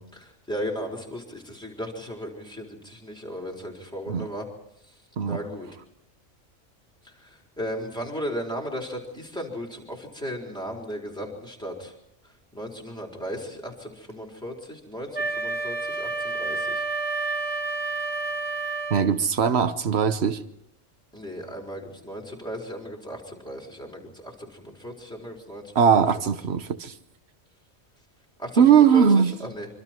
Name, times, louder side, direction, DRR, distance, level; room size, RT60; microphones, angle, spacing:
voice 1, 0.2-4.5 4.9-5.0 5.2-5.7 7.0-11.9 12.5-16.8 21.1-25.7 28.4-29.7, equal, 5° left, 4.1 m, -36 dB
Wind instrument woodwind instrument, 15.1-19.1, right 3 dB, 25° right, 1.0 m, -29 dB
voice 2, 18.9-20.4 25.7-26.9 28.6-29.3, right 7 dB, 60° right, 1.3 m, -20 dB
25.0 x 25.0 x 4.5 m
omnidirectional pair, 1.3 m